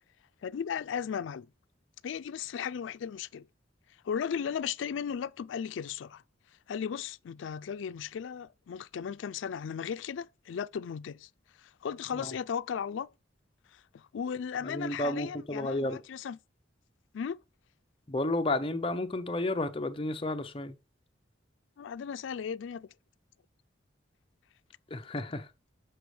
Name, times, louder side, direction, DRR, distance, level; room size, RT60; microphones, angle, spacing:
voice 1, 0.4-1.5 2.0-3.5 4.0-6.2 6.7-11.3 11.6-13.1 13.7-16.4 17.1-17.4 21.8-22.9, left 7 dB, 80° left, 0.3 m, -36 dB
voice 2, 14.6-16.0 18.1-20.8 24.9-25.5, left 2 dB, 30° left, 0.7 m, -32 dB
7.8 x 5.1 x 3.2 m
head